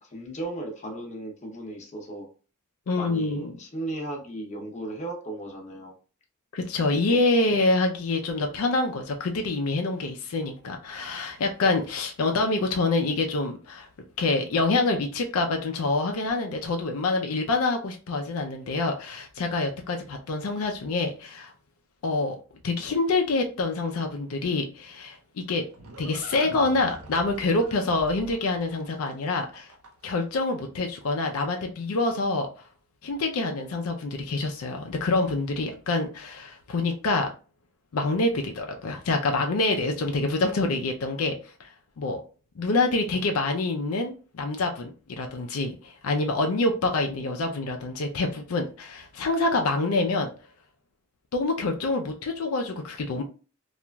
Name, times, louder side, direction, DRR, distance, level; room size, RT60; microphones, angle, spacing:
voice 1, 0.0-2.3 3.0-5.9 6.9-7.2, right 1 dB, 35° left, 0.7 m, -36 dB
voice 2, 2.9-3.5 6.5-13.9 14.2-21.5 22.0-22.4 22.6-25.6 26.0-29.7 30.0-32.7 33.0-37.3 37.9-42.2 42.6-50.3 51.3-53.2, left 3 dB, 80° left, 0.4 m, -26 dB
Livestock farm animals working animals, 25.1-30.2, right 2 dB, 80° right, 0.6 m, -45 dB
2.9 x 2.4 x 2.2 m
head